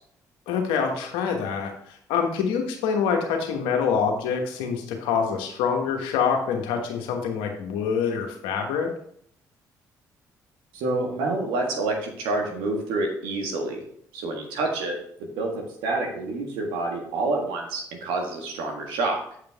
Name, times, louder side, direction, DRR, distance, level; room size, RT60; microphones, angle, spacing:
voice 1, 0.5-8.9, left 6 dB, 80° left, 3 dB, 1.2 m, -26 dB
voice 2, 10.7-13.8 14.1-19.2, right 2 dB, 80° right, 1 dB, 1.6 m, -28 dB
7.8 x 5.1 x 3.5 m, 0.66 s
hypercardioid pair, 50°, 8 cm